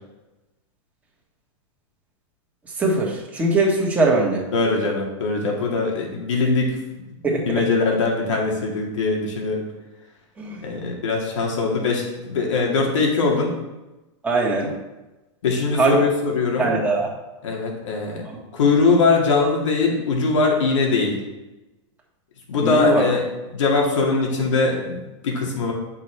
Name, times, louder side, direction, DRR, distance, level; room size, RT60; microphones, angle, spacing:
voice 1, 2.8-4.5 7.2-7.6 10.4-10.8 14.2-14.7 15.7-16.0 16.6-17.1 18.2-18.4 22.6-23.0, right 3 dB, 10° right, -3 dB, 1.5 m, -21 dB
voice 2, 4.5-6.7 7.5-9.6 10.6-13.5 15.4-16.7 17.4-18.2 18.5-21.2 22.5-23.2 23.5-25.7, left 4 dB, 80° left, -1 dB, 2.0 m, -21 dB
8.3 x 6.0 x 3.4 m, 1.0 s
hypercardioid pair, 145°, 16 cm